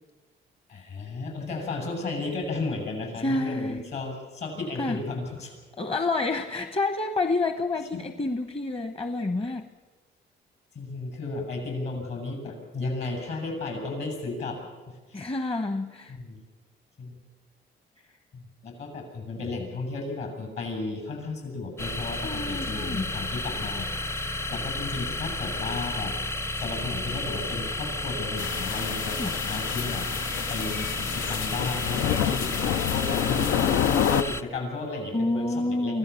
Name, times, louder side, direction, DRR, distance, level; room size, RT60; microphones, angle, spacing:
voice 1, 0.7-5.5 7.9-8.0 10.7-14.6 14.9-15.3 16.1-16.4 17.0-17.2 18.3-26.1 26.6-36.0, left 3 dB, 60° left, 4 dB, 7.4 m, -34 dB
voice 2, 3.2-3.9 4.8-5.0 5.8-9.7 15.1-16.2 22.2-23.0 29.1-29.3 35.1-36.0, left 2 dB, 30° left, 8 dB, 1.0 m, -28 dB
sound 1, 21.8-34.4, left 2 dB, 15° left, 0.6 m, -32 dB
sound 2, 28.4-34.2, left 11 dB, 90° left, 0.5 m, -28 dB
24.0 x 16.0 x 7.1 m, 1.3 s
cardioid pair, 90°, 20 cm